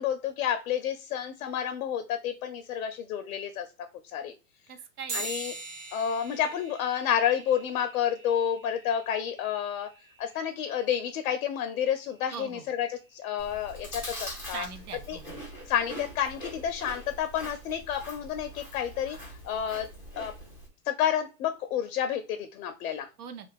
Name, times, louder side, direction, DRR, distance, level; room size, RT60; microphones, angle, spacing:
voice 1, 0.0-3.7 4.0-4.3 5.1-5.5 5.9-9.9 10.2-14.7 15.1-15.2 15.7-19.9 20.2-20.3 20.9-23.1, left 9 dB, 65° left, 9 dB, 0.5 m, -30 dB
voice 2, 4.7-5.3 12.3-12.7 14.5-15.4 23.2-23.5, right 7 dB, 70° right, 8 dB, 0.7 m, -41 dB
sound 1, 5.1-14.9, right 3 dB, 35° right, 0.9 m, -45 dB
Chewing mastication, 13.4-20.7, equal, 5° right, 0.4 m, -43 dB
2.4 x 2.3 x 3.4 m, 0.31 s
hypercardioid pair, 125°, 46 cm